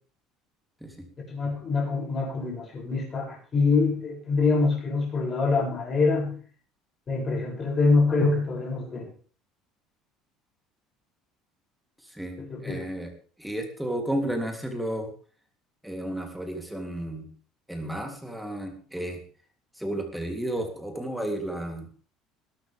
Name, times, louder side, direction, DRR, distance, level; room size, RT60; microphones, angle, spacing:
voice 1, 1.3-6.4 7.1-9.0 12.4-12.8, left 3 dB, 25° left, -1 dB, 7.6 m, -25 dB
voice 2, 12.1-13.1 13.4-15.1 15.8-17.3 17.7-19.2 19.8-21.9, right 1 dB, ahead, 3 dB, 3.4 m, -32 dB
20.5 x 13.0 x 3.6 m, 0.42 s
cardioid pair, 175°, 0 cm